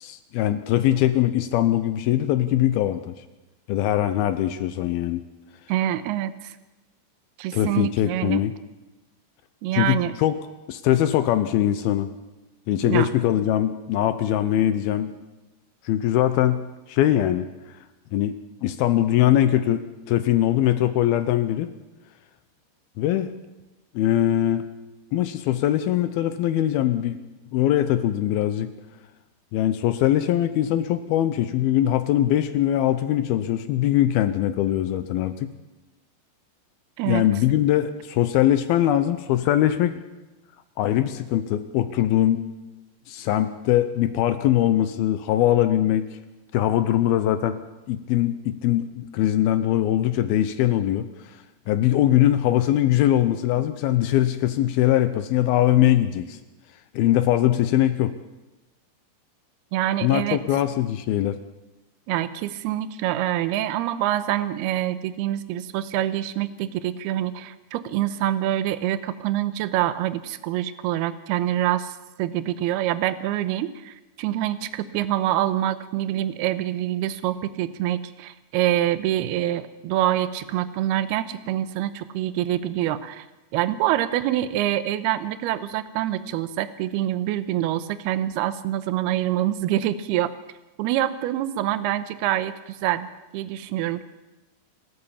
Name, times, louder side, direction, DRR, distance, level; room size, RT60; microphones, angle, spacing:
voice 1, 0.0-3.1 3.7-5.2 7.5-8.5 9.7-10.4 10.7-12.1 12.7-15.1 15.9-16.6 16.9-17.5 18.1-19.8 20.1-21.7 23.0-23.3 23.9-24.7 25.1-27.2 27.5-28.7 29.5-35.5 37.1-40.0 40.8-42.4 43.1-46.1 46.5-47.6 47.9-51.1 51.7-56.4 56.9-58.1 60.0-61.4, left 12 dB, 75° left, 11 dB, 2.3 m, -21 dB
voice 2, 5.7-6.6 7.4-8.4 9.6-10.1 12.8-13.1 37.0-37.2 59.7-60.4 62.1-71.9 72.2-83.3 83.5-90.3 90.8-94.0, right 13 dB, 75° right, 13 dB, 2.6 m, -25 dB
27.5 x 13.0 x 7.2 m, 1.1 s
omnidirectional pair, 5.1 m